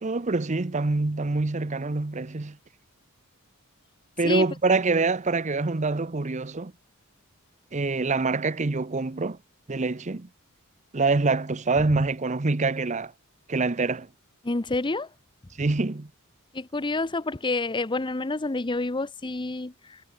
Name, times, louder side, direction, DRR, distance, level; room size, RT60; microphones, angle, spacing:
voice 1, 0.0-2.6 4.2-6.7 7.7-9.4 9.7-10.3 10.9-13.1 13.5-14.1 15.6-16.1, right 3 dB, 35° right, 0.8 m, -25 dB
voice 2, 14.4-15.1 16.5-20.0, left 2 dB, 20° left, 0.7 m, -28 dB
head